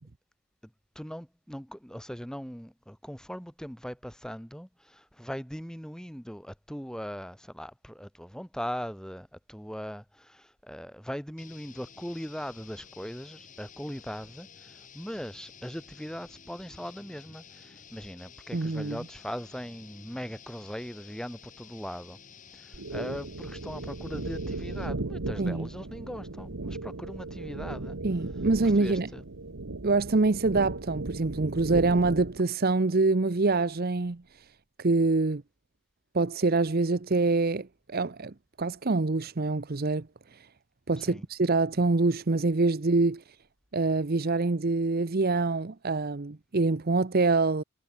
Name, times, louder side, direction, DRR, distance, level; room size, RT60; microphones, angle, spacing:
voice 1, 0.6-22.2 22.5-28.0 28.6-29.2 41.0-41.2, equal, 5° left, 3.0 m, -40 dB
sound 1, 11.4-25.1, left 6 dB, 35° left, 5.7 m, -52 dB
voice 2, 18.5-19.0 25.4-25.7 28.0-29.1 29.8-34.2 34.8-35.4 36.1-40.1 40.9-43.2 43.7-47.6, right 3 dB, 45° right, 0.7 m, -25 dB
sound 2, 22.7-32.4, right 2 dB, 65° right, 1.2 m, -36 dB
head